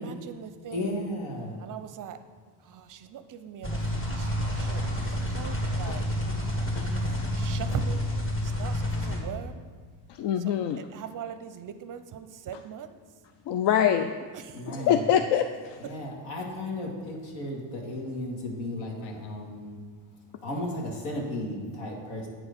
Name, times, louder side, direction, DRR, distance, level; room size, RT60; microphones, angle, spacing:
voice 1, 0.0-1.0 1.6-2.2 2.6-6.0 6.8-8.1 8.4-9.6 10.8-12.9 14.3-14.5, right 9 dB, 40° right, 10 dB, 0.5 m, -41 dB
voice 2, 0.7-1.6 14.5-15.1 15.8-19.8 20.4-22.3, left 1 dB, 75° left, 0 dB, 1.9 m, -34 dB
sound 1, 3.6-9.2, equal, 25° left, 1.6 m, -29 dB
voice 3, 10.1-10.8 12.5-12.6 13.5-14.1 14.7-15.8 19.0-19.3, left 9 dB, 60° left, 8 dB, 0.5 m, -25 dB
8.6 x 4.6 x 5.1 m, 1.5 s
supercardioid pair, 90°, 48 cm